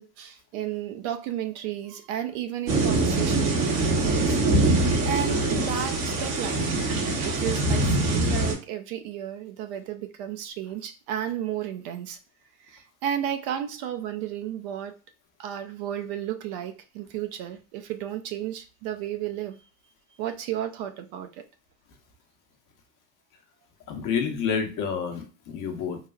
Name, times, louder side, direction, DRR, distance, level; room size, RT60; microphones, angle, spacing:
voice 1, 0.0-4.4 5.0-12.2 12.6-15.0 15.4-19.6 20.2-21.4, right 10 dB, 50° right, 0.5 m, -33 dB
sound 1, 2.7-8.5, right 2 dB, 80° right, 1.4 m, -23 dB
voice 2, 23.9-26.0, left 6 dB, 40° left, 0.8 m, -29 dB
3.2 x 2.3 x 2.3 m
hypercardioid pair, 95°, 48 cm